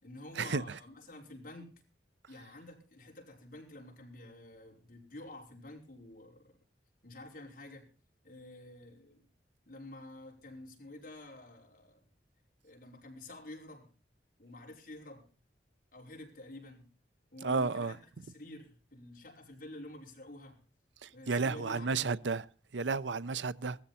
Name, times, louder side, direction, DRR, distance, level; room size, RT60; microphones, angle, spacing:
voice 1, 0.0-1.7 2.3-6.5 7.0-7.9 8.2-9.2 9.7-12.1 12.6-13.9 14.4-15.3 15.9-16.9 17.3-20.6 21.1-22.1, left 1 dB, 50° left, 5.3 m, -49 dB
voice 2, 17.4-17.9 21.0-22.4 22.7-23.8, right 4 dB, 85° right, 0.7 m, -32 dB
17.5 x 14.5 x 4.3 m
head